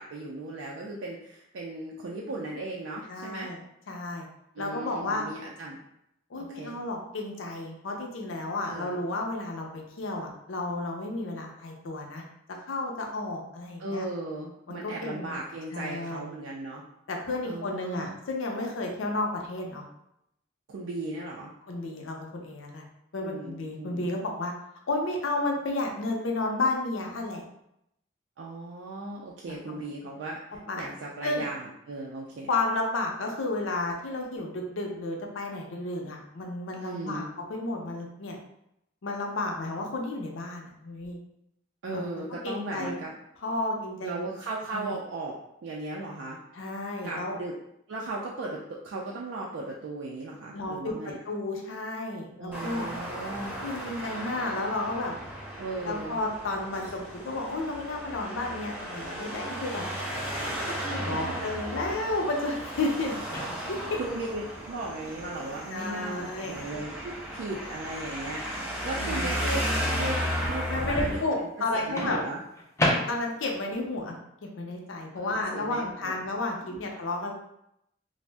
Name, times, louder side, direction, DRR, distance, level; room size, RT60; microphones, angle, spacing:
voice 1, 0.0-3.5 4.5-5.8 6.3-6.8 8.6-9.0 13.8-16.8 17.4-18.2 20.7-21.5 23.2-24.1 28.4-32.5 36.8-37.3 41.8-43.1 44.0-45.4 45.6-46.4 47.0-47.6 47.9-51.2 52.4-53.6 55.6-56.2 60.7-60.9 63.9-72.4 75.2-76.2 76.7-76.8, right 2 dB, 70° right, -3 dB, 0.3 m, -37 dB
voice 2, 3.1-3.6 3.9-4.3 4.6-5.2 6.3-12.2 12.7-14.1 14.7-15.4 15.7-16.2 17.1-19.8 21.7-22.8 23.1-24.5 24.9-27.4 29.5-29.8 30.7-30.9 31.2-31.4 32.5-37.2 37.5-38.4 39.0-41.2 41.9-42.9 43.4-44.3 44.7-44.9 46.5-47.4 50.5-52.9 53.6-55.1 55.8-59.8 60.7-63.2 63.7-64.0 65.7-66.5 68.9-69.3 70.6-72.2 73.1-74.1 74.4-77.3, left 2 dB, 85° left, 1 dB, 0.5 m, -32 dB
Traffic noise roadway noise, 52.5-71.2, equal, 10° right, 0.8 m, -34 dB
Microwave oven, 63.3-63.9 65.9-66.2 72.0-73.6, left 1 dB, 15° left, 0.3 m, -30 dB
2.5 x 2.0 x 3.3 m, 0.81 s
head